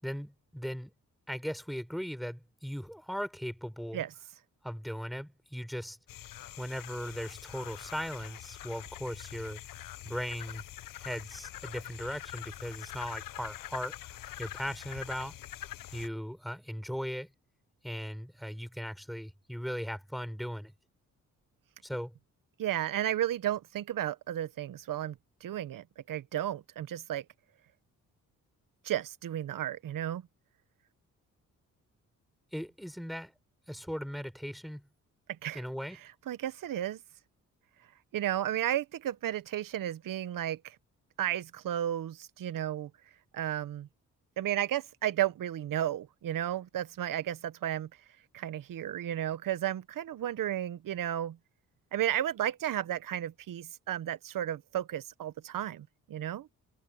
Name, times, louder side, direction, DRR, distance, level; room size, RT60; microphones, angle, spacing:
voice 1, 0.0-0.9 1.3-4.0 4.6-6.0 6.6-9.6 10.0-10.6 11.0-15.4 15.9-17.3 17.8-20.7 21.8-22.2 32.5-33.3 33.7-34.9 35.5-36.0, equal, ahead, 4.3 m, -38 dB
sound 1, 6.1-16.1, left 13 dB, 75° left, 0.9 m, -45 dB
voice 2, 22.6-27.2 28.8-30.2 35.4-35.6 36.3-37.0 38.1-40.7 41.2-42.9 43.3-43.9 44.4-47.9 48.3-51.4 51.9-56.5, right 11 dB, 75° right, 1.3 m, -33 dB
supercardioid pair, 55°, 33 cm